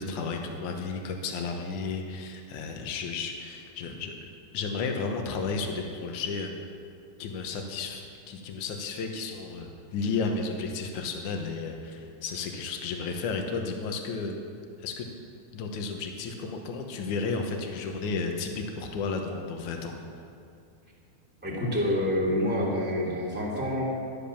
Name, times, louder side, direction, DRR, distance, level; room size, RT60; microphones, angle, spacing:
voice 1, 0.0-4.3 4.5-6.5 7.2-14.4 14.8-15.1 15.5-19.9, left 4 dB, 80° left, 3 dB, 1.8 m, -33 dB
voice 2, 21.4-23.8, left 1 dB, 5° right, -5 dB, 1.3 m, -27 dB
12.5 x 11.0 x 7.0 m, 2.5 s
omnidirectional pair, 5.2 m